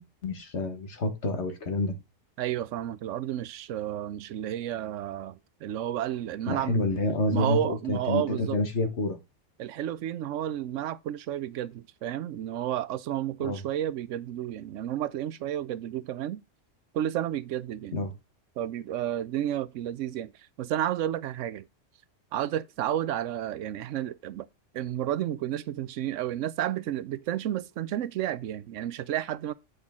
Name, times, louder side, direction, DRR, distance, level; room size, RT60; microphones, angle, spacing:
voice 1, 0.0-2.0 6.5-9.2 13.4-13.6 17.9-18.1, left 2 dB, 65° left, 1.8 m, -28 dB
voice 2, 2.4-6.9 7.3-8.6 9.6-16.4 16.9-17.9 18.6-20.3 20.6-21.7 22.3-24.5 24.7-29.5, right 11 dB, 85° right, 0.9 m, -31 dB
8.1 x 5.9 x 3.6 m
omnidirectional pair, 1.3 m